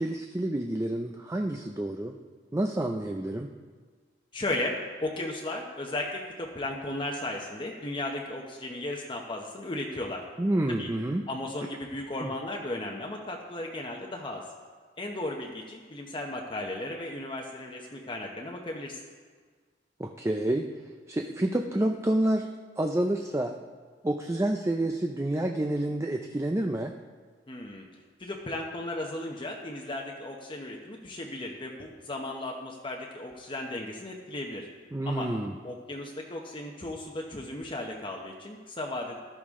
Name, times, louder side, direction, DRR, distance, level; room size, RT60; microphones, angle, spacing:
voice 1, 0.0-2.2 2.5-3.5 10.4-11.2 12.2-12.3 20.0-20.7 21.1-22.5 22.8-23.6 24.0-26.9 34.9-35.5, right 1 dB, 15° right, 4 dB, 0.4 m, -28 dB
voice 2, 4.3-10.2 10.7-10.9 11.3-14.5 15.0-19.0 27.5-27.9 28.2-34.7 35.0-35.3 35.6-39.2, left 1 dB, 30° left, 0 dB, 0.9 m, -35 dB
13.5 x 11.0 x 3.7 m, 1.5 s
head